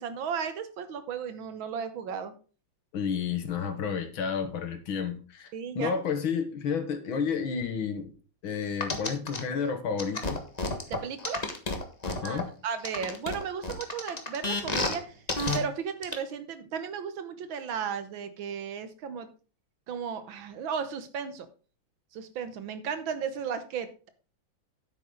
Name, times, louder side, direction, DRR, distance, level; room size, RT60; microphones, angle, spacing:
voice 1, 0.0-2.3 5.5-5.9 10.9-11.4 12.2-15.1 15.5-19.3 19.9-21.5 22.1-24.1, right 7 dB, 75° right, 10 dB, 1.8 m, -35 dB
voice 2, 2.9-5.5 5.8-8.1 8.4-10.4 12.0-12.5, left 6 dB, 75° left, 8 dB, 2.1 m, -31 dB
sound 1, 8.8-9.4 10.0-12.4 12.8-15.0 15.3-15.6 16.0-16.1, left 2 dB, 25° left, 1.3 m, -30 dB
10.0 x 8.3 x 3.9 m, 0.37 s
omnidirectional pair, 2.2 m